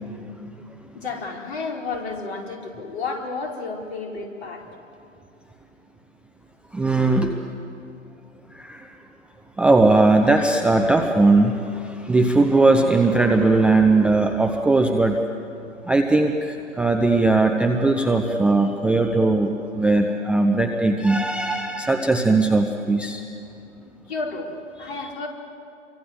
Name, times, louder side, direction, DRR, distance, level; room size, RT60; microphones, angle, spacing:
voice 1, 0.9-4.6 24.1-25.3, left 4 dB, 55° left, 1 dB, 4.8 m, -31 dB
voice 2, 6.7-7.3 8.6-8.9 9.6-15.2 15.8-23.2, right 2 dB, 5° right, 3 dB, 0.5 m, -19 dB
28.5 x 24.0 x 8.0 m, 2.6 s
figure-of-eight pair, 120°, 38 cm